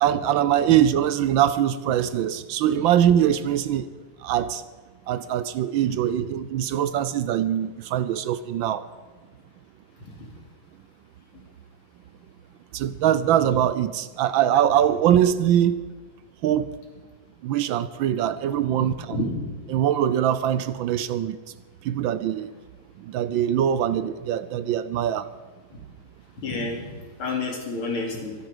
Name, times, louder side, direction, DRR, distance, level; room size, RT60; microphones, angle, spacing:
voice 1, 0.0-3.9 4.2-4.6 5.1-8.8 12.7-15.8 16.4-16.7 17.4-19.3 19.7-21.4 21.8-22.5 23.0-25.3, right 10 dB, 75° right, 14 dB, 1.3 m, -22 dB
voice 2, 26.4-26.9 27.2-28.3, left 3 dB, 80° left, 1 dB, 3.6 m, -29 dB
23.5 x 9.7 x 5.0 m, 1.4 s
omnidirectional pair, 2.3 m